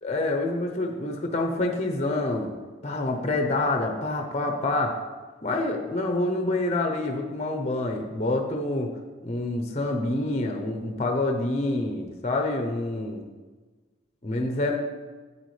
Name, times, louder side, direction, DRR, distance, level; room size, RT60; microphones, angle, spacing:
voice 1, 0.0-2.5 2.8-5.0 5.4-8.9 9.2-13.2 14.2-14.8, left 2 dB, 35° left, 3 dB, 0.7 m, -27 dB
8.7 x 8.3 x 3.2 m, 1.4 s
head